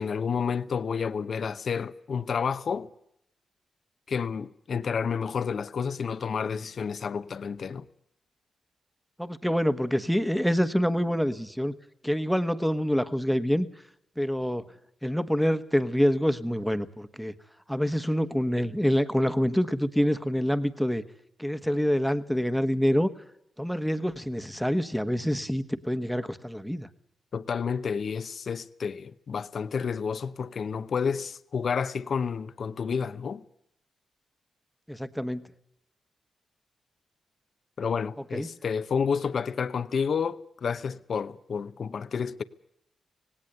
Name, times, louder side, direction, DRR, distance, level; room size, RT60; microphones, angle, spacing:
voice 1, 0.0-2.9 4.1-7.8 27.3-33.4 37.8-42.4, left 6 dB, 60° left, 0.9 m, -30 dB
voice 2, 9.2-11.7 12.0-13.7 14.2-14.6 15.0-17.3 17.7-21.0 21.4-23.1 23.6-26.9 34.9-35.4 38.3-38.5, equal, ahead, 1.4 m, -26 dB
18.0 x 17.5 x 8.1 m
cardioid pair, 70°, 0 cm